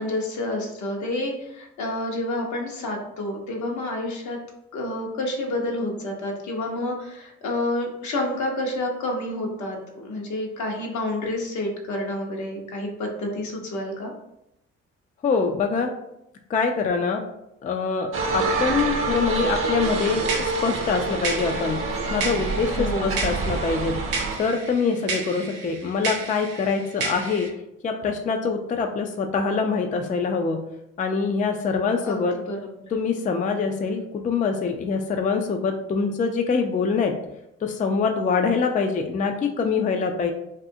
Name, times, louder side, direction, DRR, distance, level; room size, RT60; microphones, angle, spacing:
voice 1, 0.0-4.4 4.7-14.1 22.7-23.1 32.0-32.2 32.5-32.6, left 1 dB, 65° left, 0 dB, 0.8 m, -29 dB
voice 2, 15.2-15.9 16.5-17.2 17.6-21.8 22.1-24.0 24.4-27.5 27.8-30.6 31.0-32.3 32.9-37.2 37.6-40.3, left 5 dB, 25° left, 4 dB, 0.3 m, -24 dB
sound 1, 18.1-24.4, right 3 dB, 45° right, 0.6 m, -27 dB
sound 2, 19.8-27.5, right 4 dB, 80° right, 0.6 m, -33 dB
2.6 x 2.4 x 2.6 m, 0.82 s
hypercardioid pair, 50°, 31 cm